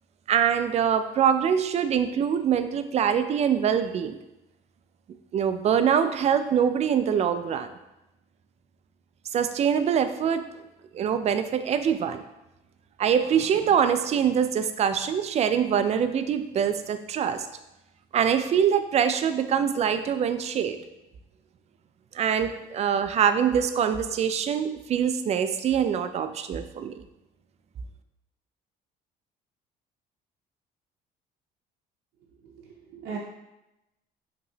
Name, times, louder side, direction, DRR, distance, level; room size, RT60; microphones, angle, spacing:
voice 1, 0.3-4.2 5.3-7.7 9.3-10.4 10.9-12.2 13.0-17.5 18.1-20.8 22.1-26.9, right 8 dB, 40° right, 10 dB, 0.4 m, -24 dB
voice 2, 32.5-33.2, right 6 dB, 85° right, -4 dB, 0.7 m, -38 dB
5.5 x 3.0 x 2.7 m, 0.94 s
cardioid pair, 110°, 17 cm